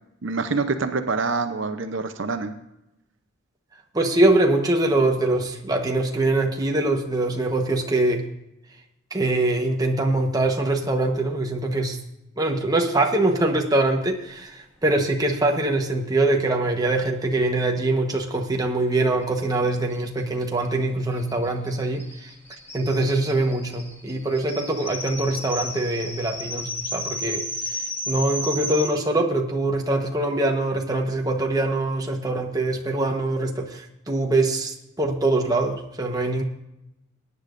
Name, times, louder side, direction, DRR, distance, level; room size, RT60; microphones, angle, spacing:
voice 1, 0.2-2.5, right 4 dB, 65° right, 8 dB, 0.7 m, -26 dB
voice 2, 3.9-8.2 9.1-12.0 12.4-22.3 22.7-36.4, right 2 dB, 20° right, 2 dB, 1.1 m, -23 dB
sound 1, 19.2-19.3 19.5-19.6 19.9-28.9, left 1 dB, 10° left, 2.0 m, -34 dB
20.5 x 9.9 x 2.6 m, 0.88 s
head